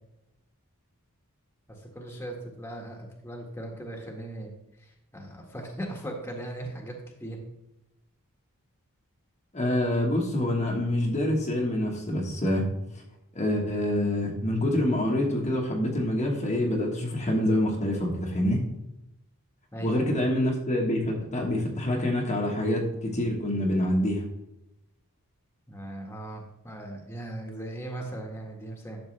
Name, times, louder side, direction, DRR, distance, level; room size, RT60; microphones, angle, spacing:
voice 1, 1.7-7.4 19.7-20.2 25.7-29.0, right 1 dB, 10° left, 1 dB, 1.5 m, -38 dB
voice 2, 9.5-12.6 12.9-13.0 13.3-18.7 19.8-24.2, left 1 dB, 30° left, -1 dB, 1.4 m, -26 dB
11.5 x 6.7 x 3.3 m, 0.89 s
head